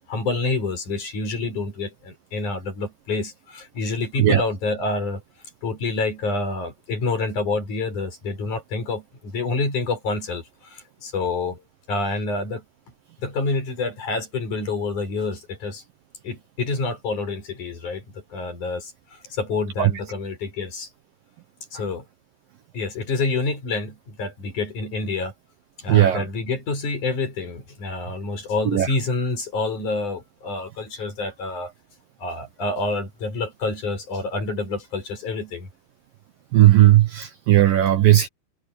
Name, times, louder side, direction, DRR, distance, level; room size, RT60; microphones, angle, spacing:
voice 1, 0.1-5.2 5.6-11.6 11.9-12.6 13.2-15.8 16.2-20.9 21.7-22.0 22.7-25.3 25.8-31.7 32.2-35.7, left 3 dB, 45° left, 6.9 m, -28 dB
voice 2, 25.9-26.2 28.7-28.9 36.5-38.3, right 13 dB, 65° right, 2.5 m, -16 dB
omnidirectional pair, 4.9 m